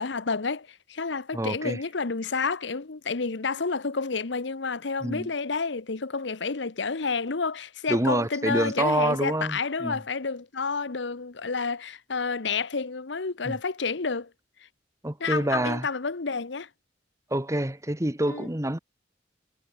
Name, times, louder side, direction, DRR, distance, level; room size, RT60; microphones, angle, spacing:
voice 1, 0.0-14.3 15.2-16.7 18.3-18.5, left 4 dB, 75° left, 1.0 m, -30 dB
voice 2, 1.3-1.8 5.0-5.3 7.9-10.0 13.4-13.6 15.0-15.9 17.3-18.8, right 1 dB, 15° right, 1.4 m, -27 dB
head